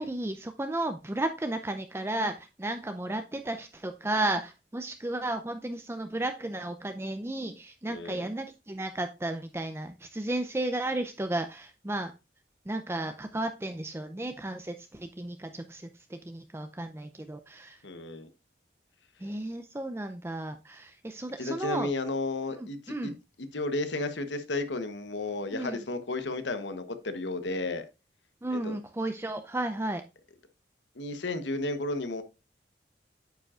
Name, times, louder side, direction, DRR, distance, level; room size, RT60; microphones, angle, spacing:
voice 1, 0.0-12.1 12.7-17.8 19.2-21.9 22.6-23.2 25.5-25.8 28.4-30.0, right 1 dB, 15° right, 0.5 m, -33 dB
voice 2, 7.9-8.3 17.8-18.3 21.4-23.1 23.5-27.8 28.5-28.8 31.0-32.2, left 2 dB, 90° left, 1.1 m, -33 dB
9.1 x 7.6 x 2.4 m
head